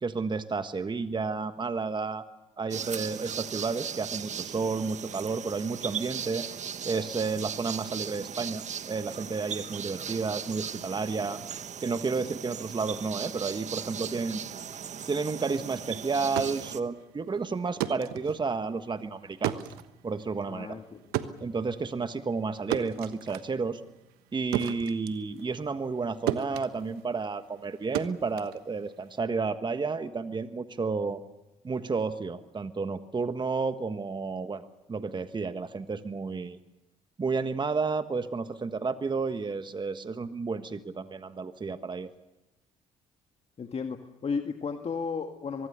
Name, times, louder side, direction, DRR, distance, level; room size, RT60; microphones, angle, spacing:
voice 1, 0.0-2.2 2.6-6.5 6.8-11.4 11.8-14.5 15.1-19.6 20.0-20.8 21.4-23.8 24.3-31.2 31.6-36.6 37.2-42.1, right 4 dB, 30° right, 10 dB, 1.4 m, -31 dB
sound 1, 2.7-16.8, right 8 dB, 50° right, 1.5 m, -38 dB
sound 2, 16.4-26.0 26.3-29.2, right 12 dB, 75° right, 1.2 m, -36 dB
voice 2, 20.5-21.0 43.6-45.7, left 5 dB, 40° left, 5 dB, 1.9 m, -34 dB
24.0 x 22.5 x 6.8 m, 1.0 s
hypercardioid pair, 55°, 16 cm